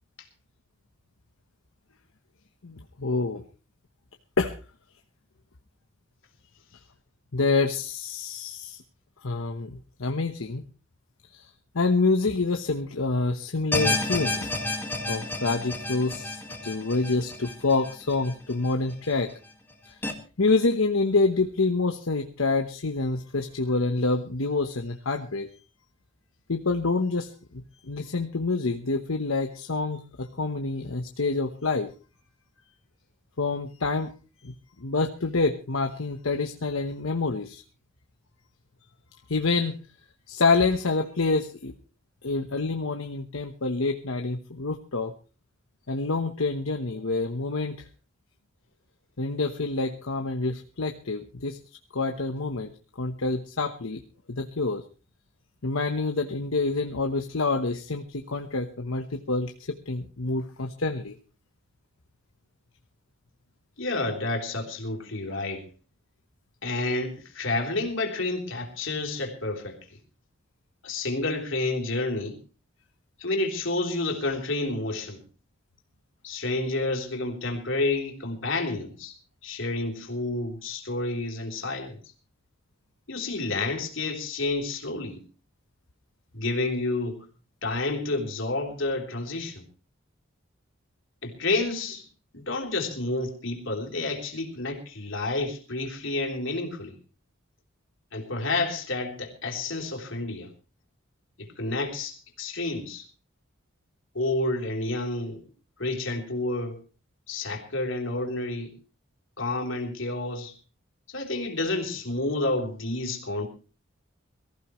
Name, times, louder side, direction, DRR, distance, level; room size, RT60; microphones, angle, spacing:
voice 1, 2.6-3.4 4.4-4.6 7.3-8.8 9.2-10.6 11.3-11.5 11.7-14.6 15.1-19.3 19.9-25.5 26.5-27.3 27.8-31.9 33.4-34.1 34.4-34.5 34.8-37.6 39.3-39.7 40.3-41.7 42.2-45.1 45.9-47.9 49.2-51.6 51.9-54.0 54.3-54.8 55.6-59.5 59.9-61.2, left 3 dB, 85° left, 1.1 m, -27 dB
sound 1, 13.7-18.9 19.3-19.4 20.0-20.1, left 2 dB, 10° left, 1.9 m, -31 dB
voice 2, 63.8-65.7 66.6-69.8 70.8-72.4 73.2-75.2 76.2-79.2 79.4-82.0 83.1-85.2 86.3-87.2 87.6-89.6 91.2-92.0 92.3-96.9 98.1-100.5 101.4-103.1 104.1-105.4 105.8-106.8 107.3-108.7 109.4-110.5 111.1-113.5, left 2 dB, 70° left, 3.6 m, -29 dB
23.0 x 15.0 x 3.2 m
head